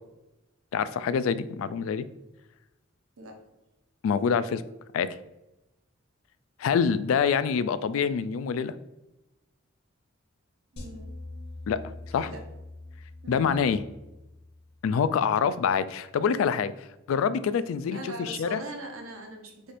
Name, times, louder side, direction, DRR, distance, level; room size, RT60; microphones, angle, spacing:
voice 1, 0.7-2.1 4.0-4.6 4.9-5.1 6.6-8.7 11.7-11.8 12.1-12.3 13.3-13.8 14.8-16.7 17.1-18.6, left 6 dB, 75° left, 14 dB, 0.3 m, -26 dB
voice 2, 10.7-11.1 12.2-12.4 13.2-13.4 17.9-19.7, right 2 dB, 85° right, 3 dB, 0.9 m, -40 dB
sound 1, 10.8-15.1, left 2 dB, 55° left, 1.0 m, -44 dB
4.8 x 2.5 x 4.2 m, 0.97 s
head